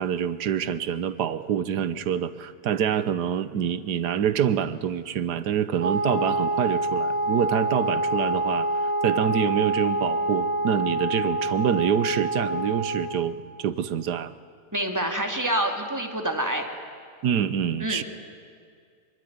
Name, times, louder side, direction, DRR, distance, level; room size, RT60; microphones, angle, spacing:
voice 1, 0.0-8.7 9.0-14.3 17.2-18.0, right 9 dB, 80° right, 14 dB, 1.5 m, -26 dB
Wind instrument woodwind instrument, 5.8-13.2, right 1 dB, 55° right, 4.6 m, -26 dB
voice 2, 14.7-16.7 17.8-18.0, right 1 dB, 10° right, 3 dB, 2.5 m, -27 dB
24.5 x 23.5 x 9.5 m, 2.2 s
omnidirectional pair, 1.7 m